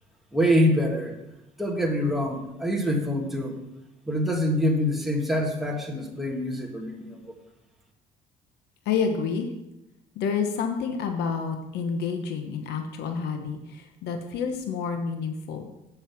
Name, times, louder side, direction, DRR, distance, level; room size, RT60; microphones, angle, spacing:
voice 1, 0.3-1.1 1.6-3.6 4.0-7.2, equal, ahead, 0 dB, 1.7 m, -25 dB
voice 2, 8.8-9.5 10.1-15.7, left 6 dB, 80° left, 6 dB, 1.0 m, -29 dB
7.7 x 5.5 x 6.9 m, 0.89 s
cardioid pair, 110°, 17 cm